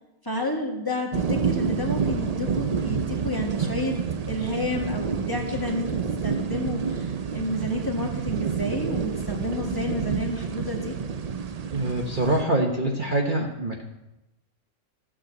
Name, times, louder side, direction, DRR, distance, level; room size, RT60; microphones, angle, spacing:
voice 1, 0.2-4.0 4.3-6.0 6.2-11.0, left 1 dB, 15° left, -1 dB, 1.7 m, -30 dB
sound 1, 1.1-12.4, right 6 dB, 65° right, 0.3 m, -29 dB
voice 2, 11.7-13.8, right 1 dB, 40° right, 1 dB, 1.1 m, -25 dB
13.5 x 6.3 x 7.9 m, 0.94 s
omnidirectional pair, 1.5 m